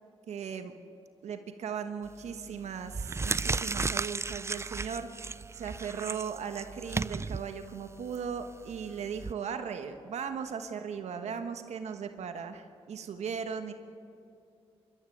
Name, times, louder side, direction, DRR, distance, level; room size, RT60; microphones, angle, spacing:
voice 1, 0.3-0.7 1.2-5.3 5.5-13.7, right 6 dB, 85° right, 7 dB, 1.3 m, -37 dB
sound 1, 2.1-2.4 2.8-9.3, right 4 dB, 25° right, 0.4 m, -35 dB
26.5 x 13.0 x 8.7 m, 2.7 s
cardioid pair, 80°, 11 cm